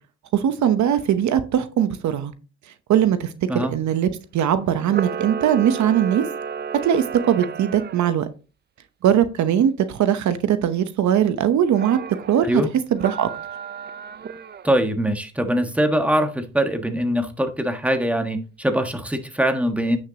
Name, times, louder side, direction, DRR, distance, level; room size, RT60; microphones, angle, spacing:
voice 1, 0.3-2.3 2.9-6.2 6.8-8.3 9.0-12.0 12.3-12.6 12.9-13.3, right 9 dB, 70° right, 0.9 m, -20 dB
Camera, 4.8-8.1 11.7-12.4 13.0-14.8, right 6 dB, 35° right, 0.5 m, -32 dB
voice 2, 14.6-20.0, equal, 5° right, 1.4 m, -22 dB
9.8 x 6.4 x 2.9 m
cardioid pair, 90°, 30 cm